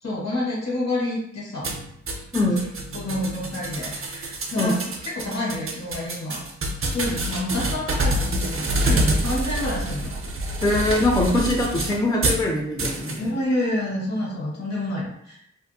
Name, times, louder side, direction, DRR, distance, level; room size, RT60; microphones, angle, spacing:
voice 1, 0.0-1.7 2.9-6.4 6.8-10.2 13.2-15.4, left 1 dB, 65° left, -3 dB, 1.1 m, -28 dB
sound 1, 1.6-12.4 12.8-13.2, right 1 dB, 50° right, 0.5 m, -27 dB
voice 2, 10.6-13.3, left 1 dB, 15° left, -1 dB, 0.4 m, -22 dB
2.5 x 2.4 x 2.6 m, 0.72 s
wide cardioid pair, 100°, 29 cm